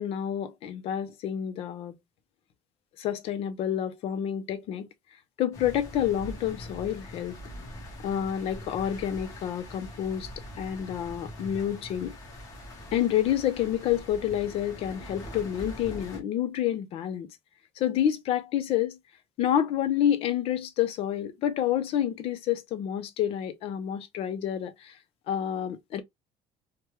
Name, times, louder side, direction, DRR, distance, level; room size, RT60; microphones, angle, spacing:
voice 1, 0.0-2.0 3.0-4.9 5.4-7.4 8.0-10.3 10.6-12.1 12.9-17.3 17.8-19.0 19.4-24.9 25.3-26.0, left 10 dB, 55° left, 0.6 m, -28 dB
sound 1, 5.5-16.2, equal, 30° left, 1.1 m, -43 dB
3.3 x 2.2 x 3.0 m
cardioid pair, 180°, 12 cm